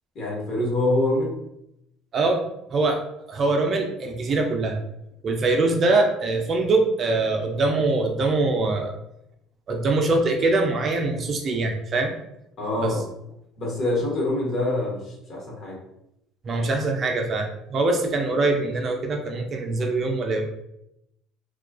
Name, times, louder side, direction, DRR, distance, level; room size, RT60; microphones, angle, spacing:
voice 1, 0.1-1.3 12.6-13.0 13.6-15.8, left 1 dB, 50° left, -3 dB, 1.0 m, -25 dB
voice 2, 3.3-4.8 5.2-8.9 9.7-12.1 12.8-13.0 16.4-20.5, right 3 dB, 40° right, 3 dB, 0.4 m, -23 dB
2.2 x 2.2 x 2.4 m, 0.82 s
supercardioid pair, 105°, 0 cm